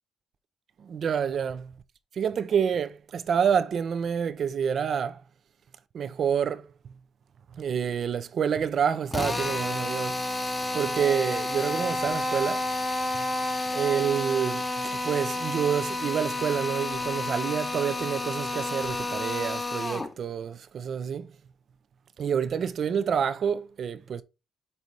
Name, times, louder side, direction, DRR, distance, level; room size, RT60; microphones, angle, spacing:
voice 1, 0.8-1.7 2.1-5.2 5.9-6.7 7.5-10.2 10.7-12.6 13.7-21.3 22.2-24.2, right 7 dB, 55° right, 0.6 m, -28 dB
Drill, 9.1-20.1, left 2 dB, 20° left, 0.9 m, -30 dB
5.6 x 4.1 x 4.6 m
cardioid pair, 90°, 0 cm